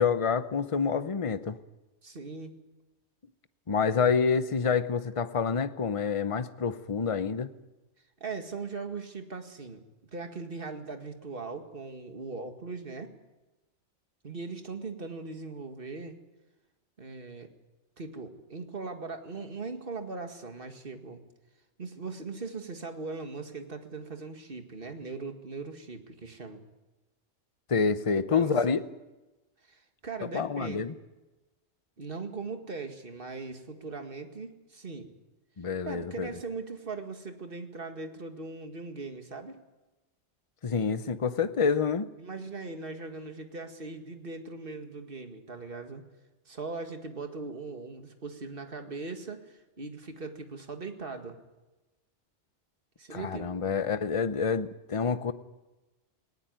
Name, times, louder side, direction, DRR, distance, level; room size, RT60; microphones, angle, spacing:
voice 1, 0.0-1.6 3.7-7.5 27.7-28.8 30.3-30.9 35.6-36.4 40.6-42.1 53.1-55.3, left 5 dB, 30° left, 12 dB, 0.9 m, -27 dB
voice 2, 2.0-2.6 8.2-9.8 10.1-13.1 14.2-16.2 17.0-17.5 18.0-21.2 21.8-26.6 28.3-28.8 29.7-30.8 32.0-35.1 35.9-39.6 42.2-46.0 46.5-51.4 53.0-53.5, right 4 dB, 50° right, 6 dB, 2.2 m, -39 dB
19.5 x 18.0 x 9.4 m, 1.1 s
omnidirectional pair, 1.2 m